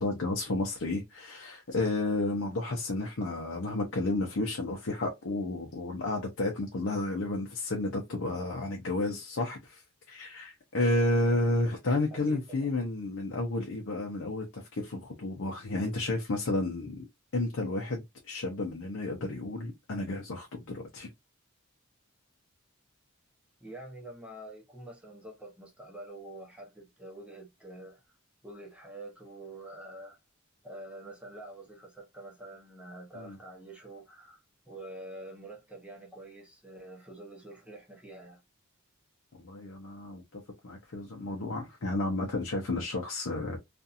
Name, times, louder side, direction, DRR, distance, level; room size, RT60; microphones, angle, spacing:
voice 1, 0.0-9.8 10.1-17.0 17.3-21.1 33.2-33.4 39.3-43.6, left 2 dB, 65° left, 0.6 m, -31 dB
voice 2, 12.1-12.9 23.6-28.0 28.4-30.2 30.6-34.4 34.7-38.4, right 1 dB, 5° right, 0.8 m, -46 dB
2.7 x 2.5 x 2.4 m
head